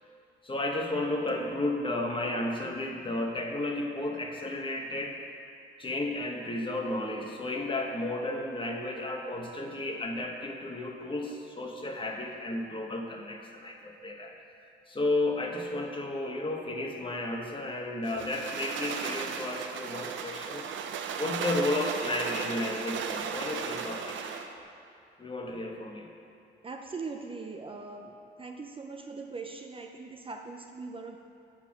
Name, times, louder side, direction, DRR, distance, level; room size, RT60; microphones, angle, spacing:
voice 1, 0.4-5.2 5.8-14.3 14.9-20.6 21.2-24.2 25.2-26.1, left 2 dB, 25° left, 1 dB, 1.2 m, -33 dB
sound 1, 18.0-24.5, right 6 dB, 75° right, 0.6 m, -36 dB
voice 2, 26.6-28.1 28.4-31.2, right 4 dB, 25° right, 3 dB, 0.6 m, -40 dB
7.3 x 5.4 x 7.2 m, 2.5 s
cardioid pair, 90°, 20 cm